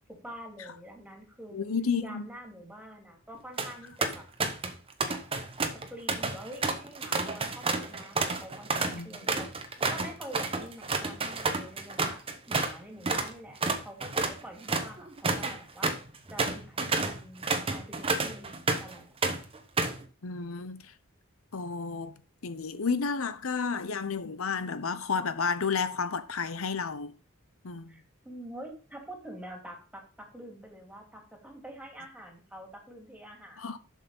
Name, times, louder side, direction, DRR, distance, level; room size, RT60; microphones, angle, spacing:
voice 1, 0.1-1.7 2.0-4.2 5.0-5.2 5.9-9.5 9.9-12.2 12.5-13.6 13.8-15.9 16.3-19.1 27.9-33.8, equal, 5° right, 2.6 m, -46 dB
voice 2, 1.5-2.3 8.8-9.1 20.2-20.8 21.5-27.1 27.6-27.9 33.6-33.8, left 5 dB, 75° left, 0.8 m, -31 dB
sound 1, 3.3-3.7 4.0-4.7 5.0-12.8 13.0-13.3 13.6-18.9 19.2-20.0, right 3 dB, 25° right, 1.0 m, -30 dB
7.2 x 6.5 x 5.5 m
head